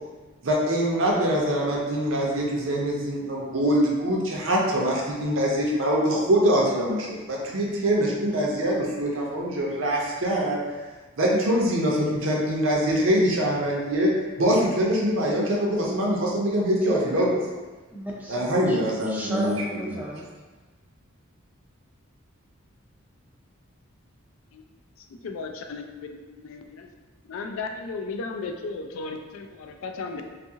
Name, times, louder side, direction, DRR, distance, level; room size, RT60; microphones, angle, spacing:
voice 1, 0.4-10.6 11.2-14.1 14.4-17.3 18.3-19.5 19.9-20.0, equal, 70° right, -3 dB, 0.6 m, -24 dB
voice 2, 17.9-18.8 19.1-20.3, right 1 dB, 10° right, -4 dB, 0.4 m, -33 dB
voice 3, 25.0-26.9 27.3-30.2, left 4 dB, 75° left, 4 dB, 0.3 m, -35 dB
2.6 x 2.4 x 2.7 m, 1.3 s
head